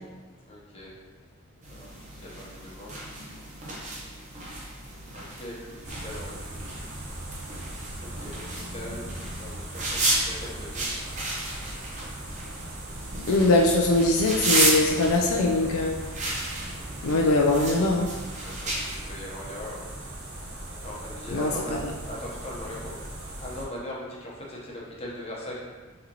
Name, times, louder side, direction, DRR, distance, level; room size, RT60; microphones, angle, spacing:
voice 1, 0.4-0.9 1.7-3.0 5.2-6.6 8.0-9.1 9.4-10.9 18.4-19.8 20.8-21.8 22.1-23.0 23.4-25.5, left 1 dB, 25° left, -4 dB, 0.8 m, -40 dB
sound 1, 1.6-19.0, right 2 dB, 35° right, 0.7 m, -33 dB
sound 2, 5.8-23.6, right 1 dB, 70° right, 0.9 m, -39 dB
voice 2, 13.3-16.0 17.0-18.1 21.3-21.8, left 2 dB, 70° left, 0 dB, 0.4 m, -22 dB
4.1 x 3.9 x 2.9 m, 1.3 s
head